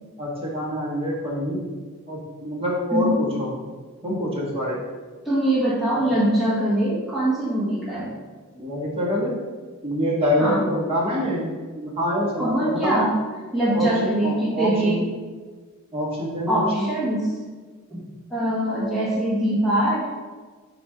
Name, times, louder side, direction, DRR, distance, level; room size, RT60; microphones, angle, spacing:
voice 1, 0.2-1.6 2.1-3.5 4.0-4.8 8.5-9.3 9.8-13.0 13.7-13.9 14.2-15.0 15.9-16.9, equal, 25° right, -5 dB, 1.4 m, -25 dB
voice 2, 5.2-8.1 10.4-10.6 12.4-13.1 13.5-15.0 16.5-17.2 17.9-18.0 18.3-20.1, right 1 dB, ahead, -9 dB, 1.1 m, -22 dB
6.5 x 2.6 x 5.6 m, 1.4 s
head